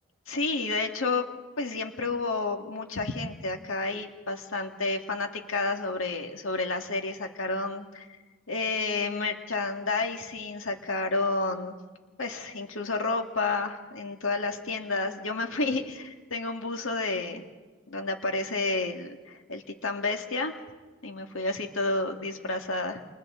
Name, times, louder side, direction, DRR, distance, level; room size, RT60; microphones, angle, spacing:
voice 1, 0.3-1.3 1.6-8.1 8.5-11.8 12.2-17.4 17.9-20.6 21.0-23.0, left 3 dB, 85° left, 4 dB, 2.0 m, -30 dB
29.0 x 27.5 x 3.8 m, 1.3 s
head